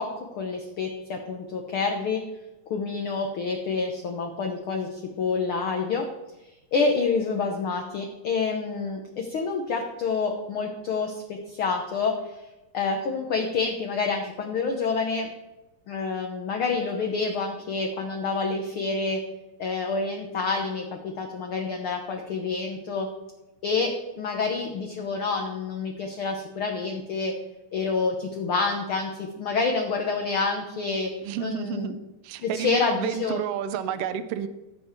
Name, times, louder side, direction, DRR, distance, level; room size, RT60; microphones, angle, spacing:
voice 1, 0.0-2.2 2.7-6.1 6.7-11.2 11.5-12.3 12.7-15.3 15.9-19.2 19.6-23.1 23.6-27.3 27.7-31.1 31.4-31.9 32.4-33.4, left 4 dB, 60° left, 2 dB, 1.4 m, -28 dB
voice 2, 31.2-32.0 32.2-34.5, right 9 dB, 85° right, 11 dB, 1.3 m, -30 dB
15.5 x 7.2 x 4.5 m, 1.0 s
omnidirectional pair, 3.7 m